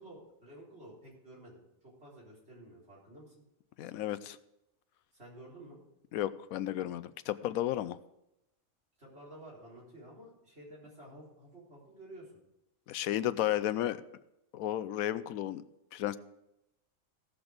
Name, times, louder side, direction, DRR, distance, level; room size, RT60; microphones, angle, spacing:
voice 1, 0.0-3.3 5.1-5.8 9.0-12.3 13.6-13.9, right 1 dB, 50° right, -5 dB, 4.4 m, -52 dB
voice 2, 3.8-4.4 6.1-8.0 12.9-14.0 14.5-15.6 15.9-16.2, left 12 dB, 85° left, 14 dB, 1.1 m, -33 dB
16.5 x 6.1 x 5.1 m, 0.86 s
omnidirectional pair, 1.4 m